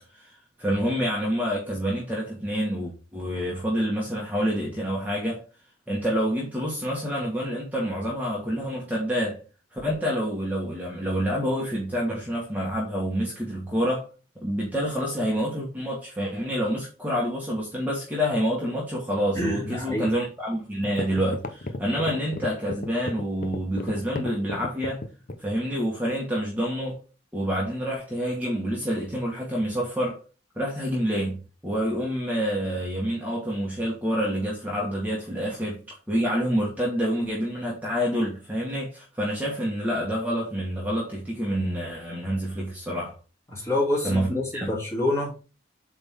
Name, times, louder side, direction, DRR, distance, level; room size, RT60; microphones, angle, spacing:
voice 1, 0.1-5.4 5.9-9.4 9.7-14.1 14.3-25.0 25.4-27.0 27.3-30.2 30.5-31.4 31.6-43.1 44.0-44.7, equal, 10° right, 1.5 m, -27 dB
voice 2, 19.3-20.1 43.5-45.4, left 1 dB, 15° left, 2.5 m, -27 dB
sound 1, 20.4-20.5 20.8-25.5, left 2 dB, 45° left, 0.7 m, -33 dB
8.0 x 3.6 x 3.6 m
head